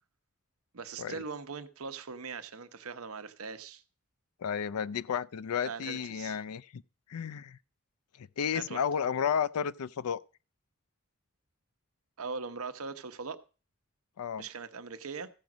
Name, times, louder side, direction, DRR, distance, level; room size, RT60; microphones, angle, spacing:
voice 1, 0.7-3.8 5.7-6.4 8.5-8.8 12.2-13.4 14.4-15.3, right 5 dB, 80° right, 0.9 m, -40 dB
voice 2, 4.4-6.8 7.1-7.6 8.2-10.2 14.2-14.4, left 7 dB, 90° left, 0.4 m, -32 dB
14.5 x 5.1 x 6.1 m
head